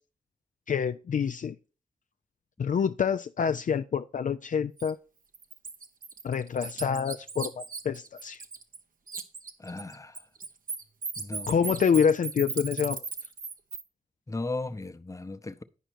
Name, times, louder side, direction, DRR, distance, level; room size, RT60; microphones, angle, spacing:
voice 1, 0.7-1.6 2.6-5.0 6.2-8.4 11.5-13.0, left 7 dB, 55° left, 0.4 m, -27 dB
Bird, 4.8-4.9 5.3-8.8 9.1-13.8, right 4 dB, 60° right, 0.9 m, -37 dB
voice 2, 9.6-10.2 11.2-11.8 14.3-15.6, left 2 dB, 20° left, 0.7 m, -36 dB
10.0 x 5.1 x 4.6 m
cardioid pair, 50°, 15 cm